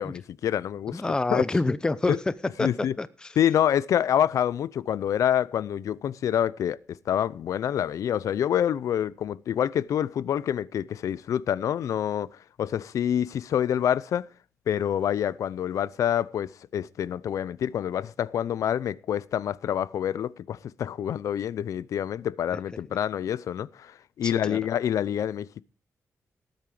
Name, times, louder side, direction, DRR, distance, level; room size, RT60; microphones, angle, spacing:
voice 1, 0.0-1.0 1.3-1.4 2.1-2.2 2.6-2.9 3.4-6.8 7.1-12.3 12.6-14.2 14.7-25.6, left 10 dB, 80° left, 0.6 m, -27 dB
voice 2, 0.9-2.2 2.6-3.3 22.5-22.6 24.2-24.6, left 2 dB, 15° left, 0.6 m, -27 dB
18.5 x 9.0 x 4.9 m
wide cardioid pair, 180°, 6 cm